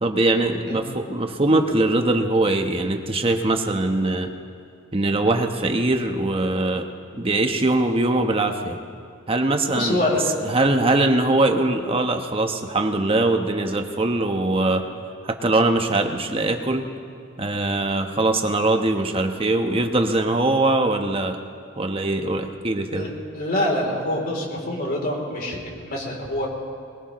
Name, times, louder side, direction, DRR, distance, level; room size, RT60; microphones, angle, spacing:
voice 1, 0.0-4.3 4.9-6.8 7.2-8.8 9.3-10.0 10.4-14.8 15.2-16.8 17.4-21.4 21.8-23.1, right 2 dB, 30° right, 5 dB, 1.1 m, -22 dB
voice 2, 9.7-10.3 22.9-26.5, left 1 dB, 45° left, -1 dB, 3.3 m, -25 dB
21.5 x 21.0 x 3.1 m, 2.3 s
head